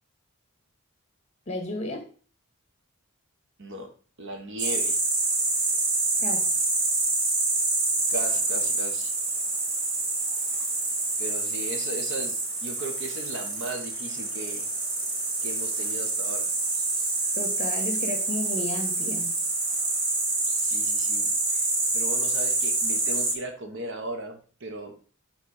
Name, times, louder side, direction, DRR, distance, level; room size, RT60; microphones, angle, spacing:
voice 1, 1.5-2.0 6.2-6.5 17.4-19.4, left 1 dB, 30° left, 4 dB, 2.0 m, -33 dB
voice 2, 3.6-3.9 4.2-5.0 8.1-9.1 11.2-14.7 15.4-16.5 20.6-25.0, right 1 dB, 60° right, 6 dB, 1.4 m, -37 dB
sound 1, 4.6-23.3, right 3 dB, 85° right, 2.0 m, -27 dB
7.3 x 3.6 x 6.5 m, 0.40 s
head